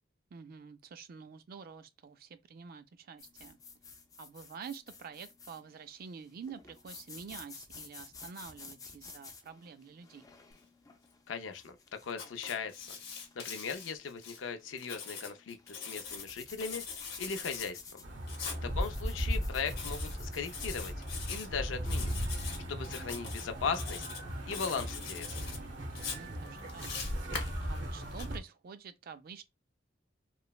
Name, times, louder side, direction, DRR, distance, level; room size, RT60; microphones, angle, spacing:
voice 1, 0.3-3.6 4.2-10.3 18.5-18.8 26.0-27.0 27.7-29.4, right 6 dB, 50° right, 0.3 m, -48 dB
sound 1, 3.2-21.0, left 4 dB, 20° left, 0.4 m, -52 dB
voice 2, 11.3-13.0 13.4-16.8 17.2-18.0 18.6-20.9 21.3-22.1 22.7-24.0 24.5-25.4, left 5 dB, 85° left, 0.4 m, -38 dB
Writing, 12.1-14.4 14.8-16.3 16.6-17.7 18.3-18.6 19.7-20.2 20.5-21.5 21.8-22.6 22.8-23.4 23.7-24.2 24.5-25.6 26.0-28.2, left 5 dB, 55° left, 0.9 m, -42 dB
sound 2, 18.0-28.4, equal, 70° right, 0.8 m, -37 dB
3.1 x 2.0 x 2.3 m
head